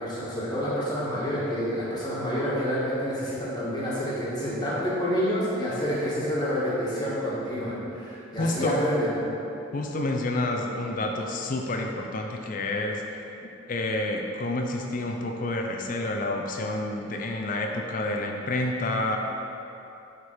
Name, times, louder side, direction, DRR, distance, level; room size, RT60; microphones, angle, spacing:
voice 1, 0.0-9.1, equal, 20° left, -8 dB, 1.4 m, -28 dB
voice 2, 8.4-9.0 9.7-13.0 13.7-19.2, left 2 dB, 40° left, 2 dB, 0.4 m, -29 dB
6.2 x 3.7 x 4.5 m, 2.9 s
head